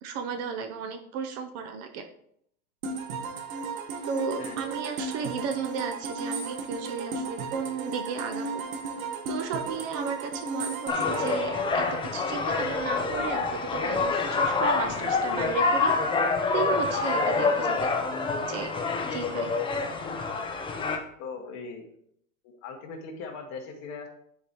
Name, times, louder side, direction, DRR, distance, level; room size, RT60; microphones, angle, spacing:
voice 1, 0.0-2.0 4.0-8.6 9.3-11.9 12.1-16.1 16.5-17.9 18.5-18.7 19.1-19.5, right 6 dB, 35° right, 7 dB, 0.6 m, -34 dB
sound 1, 2.8-12.5, right 4 dB, 70° right, 1.3 m, -35 dB
sound 2, 10.9-21.0, left 4 dB, 10° left, 0.5 m, -27 dB
voice 2, 21.2-21.9 22.4-24.1, left 4 dB, 40° left, 3 dB, 1.4 m, -39 dB
10.0 x 4.8 x 2.9 m, 0.71 s
supercardioid pair, 130°, 43 cm